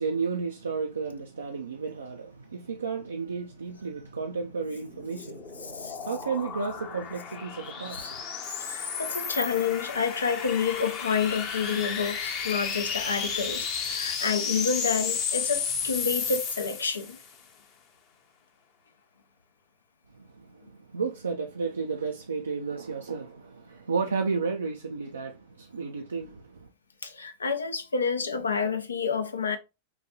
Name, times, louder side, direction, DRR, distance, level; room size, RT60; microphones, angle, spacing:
voice 1, 0.0-8.2 20.1-26.7, right 5 dB, 85° right, 0.4 m, -33 dB
sound 1, 4.7-17.3, left 6 dB, 45° left, 0.8 m, -33 dB
voice 2, 5.6-6.0 8.5-17.2 27.0-29.6, left 5 dB, 85° left, 0.5 m, -29 dB
3.8 x 2.3 x 2.8 m
hypercardioid pair, 95°, 0 cm